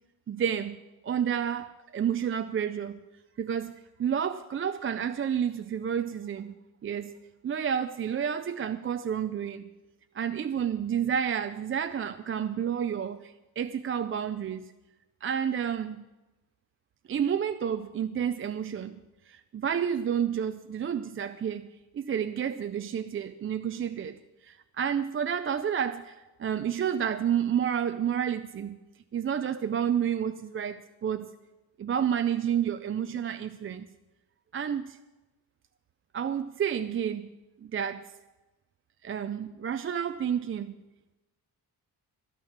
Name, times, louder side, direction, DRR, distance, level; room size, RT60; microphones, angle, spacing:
voice 1, 0.3-0.8 1.0-3.0 3.4-3.7 4.0-6.5 6.8-7.1 7.4-9.7 10.1-14.7 15.2-16.1 17.1-19.0 19.3-21.7 21.9-28.8 29.1-31.3 31.8-33.9 34.5-35.0 36.1-37.3 37.6-38.0 39.0-40.7, right 8 dB, 35° right, 0.4 m, -30 dB
12.5 x 11.5 x 6.5 m
wide cardioid pair, 140°, 39 cm